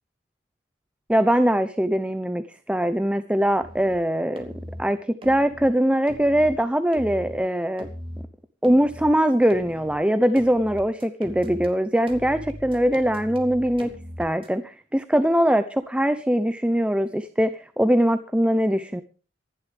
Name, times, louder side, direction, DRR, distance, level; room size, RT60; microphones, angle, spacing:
voice 1, 1.1-4.5 4.8-5.0 5.2-7.9 8.6-13.9 14.2-19.0, equal, 5° right, 11 dB, 0.7 m, -22 dB
sound 1, 3.6-4.0 4.4-4.8 5.2-5.7 6.1-6.5 6.9-7.4 7.8-8.3 8.6-9.1 9.5-10.0 10.4-11.7 12.1-14.5, equal, 30° right, 2.9 m, -39 dB
26.0 x 11.5 x 3.4 m, 0.37 s
head